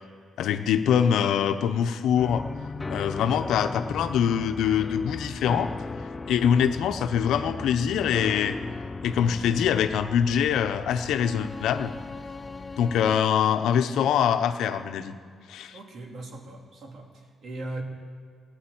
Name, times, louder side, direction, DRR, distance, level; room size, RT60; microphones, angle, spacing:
voice 1, 0.4-2.4 2.9-5.7 6.3-8.6 9.0-11.9 12.8-15.2 15.5-15.8, left 8 dB, 80° left, 8 dB, 0.9 m, -24 dB
sound 1, 2.2-13.2, left 3 dB, 25° left, 0.5 m, -37 dB
voice 2, 15.7-17.8, right 2 dB, 60° right, 1 dB, 3.0 m, -39 dB
16.0 x 10.0 x 8.9 m, 2.2 s
cardioid pair, 90°, 0 cm